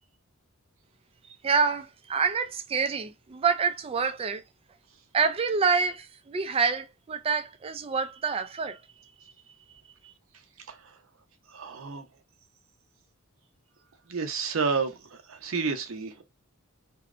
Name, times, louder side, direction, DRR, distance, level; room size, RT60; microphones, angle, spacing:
voice 1, 1.3-4.4 5.1-8.8 10.0-10.1, right 5 dB, 25° right, 0.3 m, -27 dB
voice 2, 10.7-11.0 11.5-12.1 14.1-16.2, right 5 dB, 65° right, 0.6 m, -31 dB
2.7 x 2.0 x 2.4 m
head